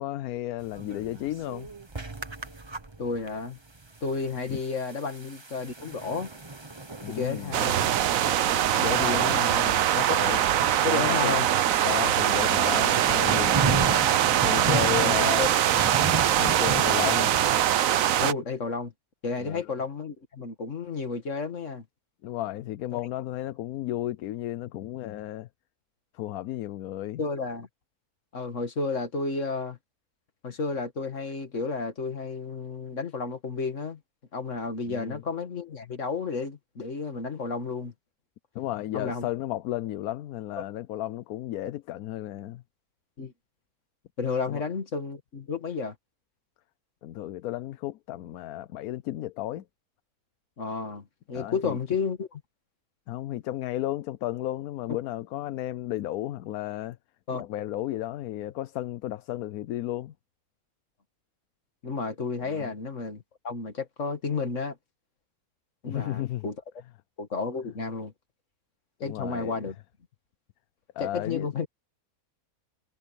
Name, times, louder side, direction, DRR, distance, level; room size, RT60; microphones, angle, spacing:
voice 1, 0.0-1.7 4.5-4.6 7.0-7.6 8.7-9.5 10.1-10.4 10.9-11.3 11.8-14.1 14.4-15.5 16.3-17.3 19.4-19.6 22.2-25.5 26.1-27.2 34.9-35.2 38.5-42.6 44.5-44.6 47.0-49.6 51.3-51.8 53.1-57.0 57.4-60.1 62.4-62.7 65.9-66.4 69.0-69.6 71.0-71.5, left 14 dB, 80° left, 1.1 m, -33 dB
sound 1, 0.6-17.7, right 3 dB, 20° right, 1.1 m, -36 dB
voice 2, 3.0-3.6 4.0-6.3 7.1-7.9 9.0-10.1 10.8-11.5 14.9-15.5 18.2-18.9 19.2-21.8 22.9-23.0 27.2-27.7 28.3-29.8 30.4-34.0 34.3-37.9 38.9-39.3 43.2-43.3 44.2-46.0 50.6-52.4 57.3-57.4 61.8-64.8 65.8-66.6 67.2-68.1 69.0-69.7 71.0-71.7, left 4 dB, 55° left, 2.3 m, -32 dB
sound 2, 7.5-18.3, right 11 dB, 70° right, 1.1 m, -23 dB
omnidirectional pair, 1.6 m